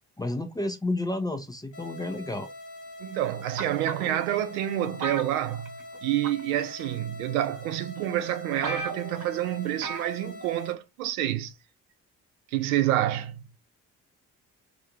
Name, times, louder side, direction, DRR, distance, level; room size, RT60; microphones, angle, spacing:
voice 1, 0.2-2.5, left 2 dB, 10° left, 0.4 m, -31 dB
sound 1, 1.7-10.7, left 1 dB, 45° left, 1.0 m, -44 dB
voice 2, 3.0-5.7 6.0-11.5 12.5-13.4, right 13 dB, 75° right, 0.5 m, -28 dB
sound 2, 3.6-4.2 5.0-6.0 6.2-6.6 7.4-7.5 8.0-8.1 8.3-8.4 8.6-9.3 9.8-10.1 10.4-10.5, right 4 dB, 45° right, 1.0 m, -34 dB
2.5 x 2.4 x 2.8 m
figure-of-eight pair, 40°, 44 cm